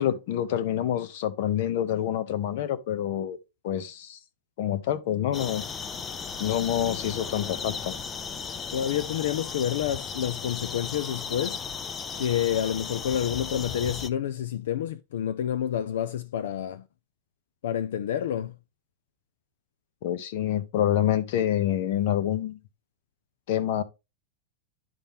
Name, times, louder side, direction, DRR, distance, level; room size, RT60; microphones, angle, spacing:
voice 1, 0.0-3.4 3.6-4.2 4.6-5.7 6.4-8.0 20.0-22.6 23.5-23.8, left 11 dB, 50° left, 0.9 m, -27 dB
sound 1, 5.3-14.1, left 6 dB, 15° left, 0.4 m, -36 dB
voice 2, 8.7-11.6 12.2-16.8 17.6-18.6, left 10 dB, 75° left, 0.5 m, -28 dB
10.5 x 4.3 x 3.6 m
supercardioid pair, 165°, 0 cm